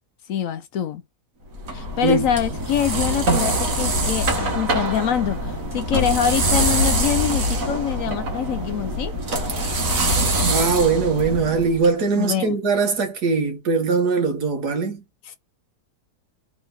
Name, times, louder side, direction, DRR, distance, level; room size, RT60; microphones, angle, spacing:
voice 1, 0.3-1.0 1.7-9.1 12.2-12.5 15.3-15.4, left 9 dB, 65° left, 0.9 m, -25 dB
sound 1, 1.5-11.9, right 1 dB, 60° right, 1.8 m, -24 dB
voice 2, 10.5-15.0, right 4 dB, 75° right, 1.9 m, -21 dB
3.6 x 3.6 x 3.8 m
omnidirectional pair, 1.7 m